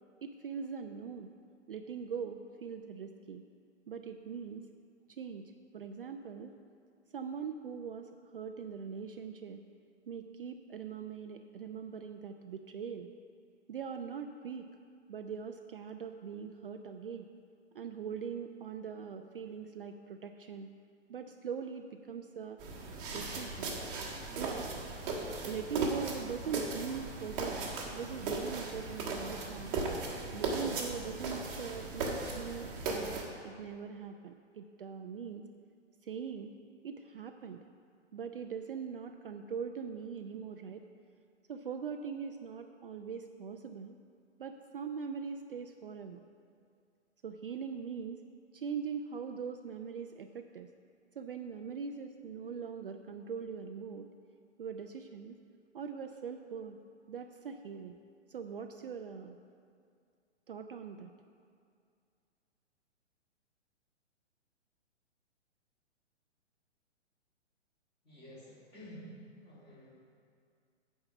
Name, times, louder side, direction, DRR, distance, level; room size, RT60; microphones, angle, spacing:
voice 1, 0.2-1.3 1.7-3.4 3.9-4.7 5.1-6.5 7.1-9.6 10.1-13.1 13.7-14.7 15.1-17.3 17.7-20.7 21.1-22.6 23.1-23.7 24.4-24.7 25.4-29.8 30.3-35.5 36.0-36.5 36.8-37.7 38.1-40.8 41.5-43.9 44.4-46.2 47.2-48.2 48.5-50.7 51.2-54.1 54.6-55.4 55.7-56.8 57.1-58.0 58.3-59.4 60.5-61.1, right 6 dB, 50° right, 6 dB, 0.5 m, -41 dB
sound 1, 22.6-33.2, right 3 dB, 20° right, 1.3 m, -37 dB
voice 2, 68.0-69.1 69.4-69.9, left 1 dB, 15° left, -8 dB, 2.7 m, -51 dB
8.8 x 5.5 x 6.8 m, 2.3 s
figure-of-eight pair, 120°, 35 cm